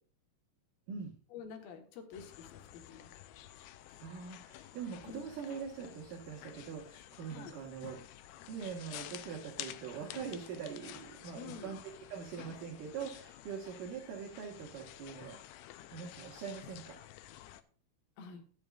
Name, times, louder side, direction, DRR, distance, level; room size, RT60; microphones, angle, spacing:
voice 1, 1.3-3.1 5.0-5.4 7.3-7.5 11.3-11.8 18.2-18.4, left 6 dB, 70° left, 4 dB, 3.2 m, -48 dB
sound 1, 2.1-17.6, left 13 dB, 90° left, 2.7 m, -51 dB
voice 2, 4.0-8.0 8.4-11.8 12.1-15.6 15.9-17.0, right 7 dB, 60° right, 0 dB, 2.9 m, -43 dB
20.5 x 7.1 x 2.5 m, 0.44 s
omnidirectional pair, 4.6 m